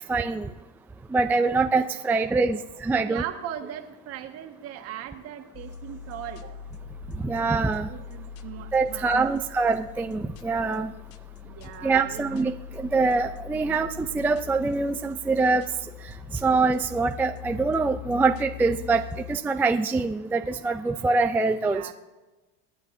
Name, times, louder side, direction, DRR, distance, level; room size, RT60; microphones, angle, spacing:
voice 1, 0.1-0.5 1.1-3.2 7.2-7.9 8.7-10.9 11.8-15.7 16.4-19.0 19.3-21.9, right 3 dB, 5° right, 6 dB, 0.4 m, -24 dB
voice 2, 3.1-6.6 7.8-9.4 11.4-12.2 21.5-21.9, right 10 dB, 50° right, 5 dB, 1.6 m, -38 dB
sound 1, 5.5-19.4, left 9 dB, 50° left, 0.9 m, -42 dB
25.0 x 9.9 x 2.7 m, 1.2 s
supercardioid pair, 130°, 31 cm